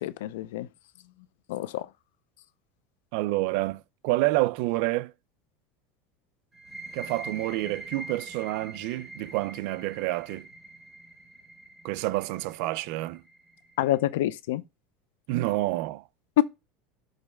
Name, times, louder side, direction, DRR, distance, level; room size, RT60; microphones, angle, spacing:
voice 1, 0.0-0.7 1.5-1.9 13.8-14.6 16.4-16.5, left 14 dB, 90° left, 0.5 m, -26 dB
voice 2, 3.1-5.1 6.9-10.5 11.8-13.2 15.3-16.0, right 19 dB, 70° right, 0.4 m, -28 dB
sound 1, 6.5-14.0, right 2 dB, 5° right, 2.5 m, -44 dB
6.5 x 3.2 x 5.8 m
supercardioid pair, 135°, 0 cm